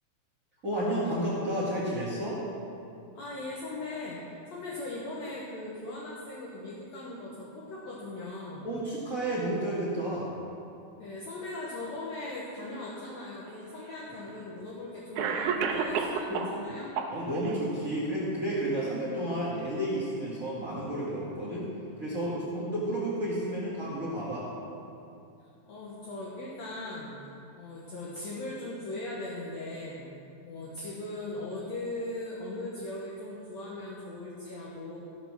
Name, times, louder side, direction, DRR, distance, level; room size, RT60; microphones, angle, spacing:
voice 1, 0.6-2.4 8.6-10.4 16.3-16.4 17.1-21.7 22.0-24.5, right 1 dB, 30° right, -7 dB, 2.1 m, -31 dB
voice 2, 3.1-8.7 11.0-16.9 25.7-27.2 27.6-30.1 30.4-35.0, left 2 dB, 60° left, -6 dB, 2.3 m, -39 dB
Cough, 13.5-13.6 14.6-14.7 15.2-16.6 16.9-17.6, right 6 dB, 75° right, 2.1 m, -30 dB
14.5 x 6.1 x 6.2 m, 2.6 s
omnidirectional pair, 3.7 m